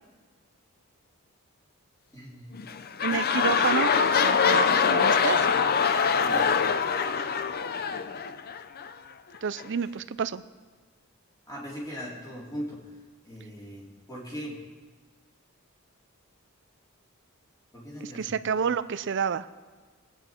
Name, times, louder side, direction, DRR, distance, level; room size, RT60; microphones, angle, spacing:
voice 1, 2.1-2.6 6.2-6.6 11.5-12.8 13.2-14.6 17.7-18.4, equal, 15° left, -5 dB, 3.5 m, -39 dB
sound 1, 2.5-8.9 9.6-9.7, left 6 dB, 45° left, 0.6 m, -24 dB
voice 2, 3.0-5.5 9.4-10.4 18.1-19.5, right 6 dB, 55° right, 14 dB, 0.5 m, -29 dB
21.0 x 8.9 x 4.5 m, 1.4 s
head